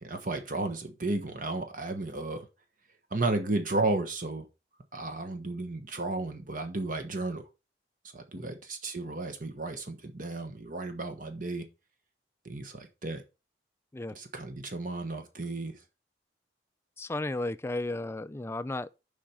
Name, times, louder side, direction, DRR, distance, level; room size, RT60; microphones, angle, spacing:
voice 1, 0.0-2.5 3.1-4.5 4.9-7.4 8.1-11.7 12.4-13.2 14.1-15.8, right 2 dB, 45° right, 1.2 m, -33 dB
voice 2, 17.0-18.9, left 2 dB, 15° left, 0.4 m, -34 dB
7.5 x 5.1 x 5.7 m
head